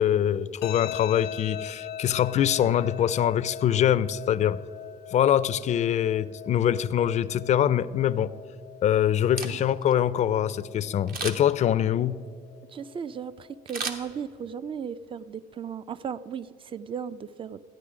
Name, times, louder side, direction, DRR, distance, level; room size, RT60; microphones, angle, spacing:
voice 1, 0.0-4.6 5.1-8.3 8.8-12.2, left 10 dB, 45° left, 0.4 m, -24 dB
sound 1, 0.6-13.6, left 11 dB, 85° left, 0.7 m, -42 dB
Camera, 9.2-9.9 11.1-11.6 13.7-14.6 15.0-15.1, right 5 dB, 60° right, 1.2 m, -35 dB
voice 2, 12.7-17.6, right 7 dB, 30° right, 0.4 m, -36 dB
13.5 x 9.3 x 4.9 m
cardioid pair, 110°, 17 cm